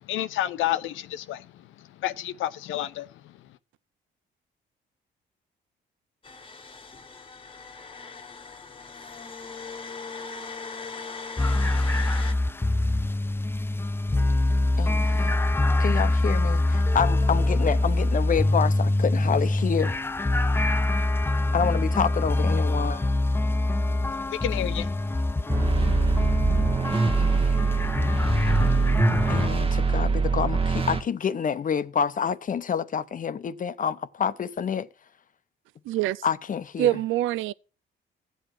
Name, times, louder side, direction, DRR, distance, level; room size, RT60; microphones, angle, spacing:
voice 1, 0.0-3.3 24.3-24.9, left 13 dB, 85° left, 0.8 m, -30 dB
sound 1, 6.2-12.3, left 4 dB, 25° left, 1.2 m, -39 dB
sound 2, 11.4-29.5, left 2 dB, 10° left, 0.4 m, -24 dB
voice 2, 14.8-15.4 15.8-19.9 21.5-23.1 27.2-27.6 29.3-34.9 36.2-36.9, left 7 dB, 40° left, 0.8 m, -28 dB
sound 3, 25.5-31.0, right 4 dB, 25° right, 1.3 m, -24 dB
voice 3, 35.9-36.2 36.8-37.5, right 14 dB, 85° right, 0.5 m, -24 dB
13.5 x 8.0 x 4.6 m
cardioid pair, 90°, 20 cm